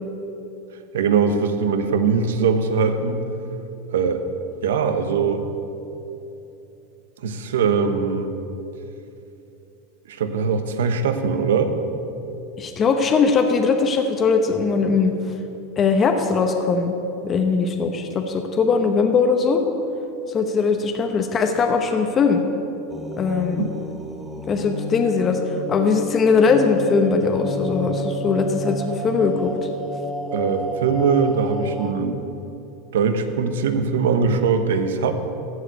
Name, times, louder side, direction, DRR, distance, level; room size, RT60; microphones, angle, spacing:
voice 1, 0.9-3.2 3.9-4.2 4.6-5.4 7.2-8.3 10.1-11.7 23.5-23.7 30.3-32.2 32.9-35.1, right 5 dB, 90° right, 8 dB, 1.0 m, -21 dB
voice 2, 12.6-15.1 15.8-16.9 17.2-19.6 20.3-22.4 23.2-23.7 24.5-29.5, left 5 dB, 30° left, 5 dB, 0.9 m, -20 dB
sound 1, 22.9-31.9, equal, 10° right, 1.1 m, -30 dB
14.0 x 4.8 x 8.9 m, 2.9 s
supercardioid pair, 125°, 0 cm